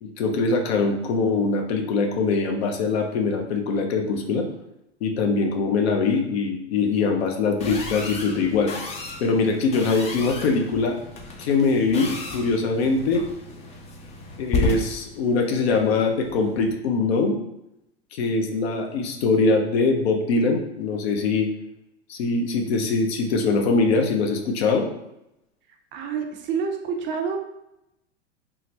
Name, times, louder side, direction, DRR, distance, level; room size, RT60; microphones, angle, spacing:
voice 1, 0.0-4.5 5.0-8.7 9.2-11.0 11.4-13.3 14.4-17.4 18.1-21.5 22.1-24.9, left 4 dB, 70° left, 4 dB, 0.7 m, -22 dB
sound 1, 7.6-16.7, left 3 dB, 20° left, 0.4 m, -33 dB
voice 2, 25.9-27.4, right 6 dB, 35° right, 3 dB, 0.5 m, -28 dB
3.7 x 2.1 x 2.9 m, 0.85 s
hypercardioid pair, 110°, 33 cm